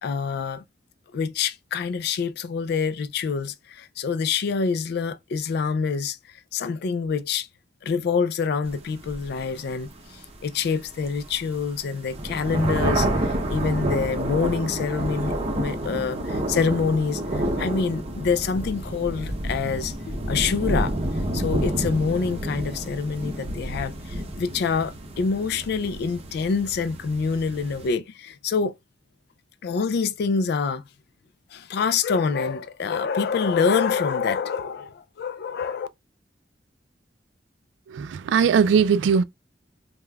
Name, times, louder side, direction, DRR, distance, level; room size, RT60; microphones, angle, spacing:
voice 1, 0.0-0.6 1.1-6.2 6.5-7.5 7.8-20.9 21.3-28.8 29.6-30.8 31.5-35.9, left 5 dB, 60° left, 0.3 m, -26 dB
sound 1, 8.6-27.9, right 1 dB, 35° right, 0.7 m, -29 dB
voice 2, 37.9-39.2, right 6 dB, 80° right, 0.3 m, -19 dB
5.0 x 2.2 x 2.2 m
head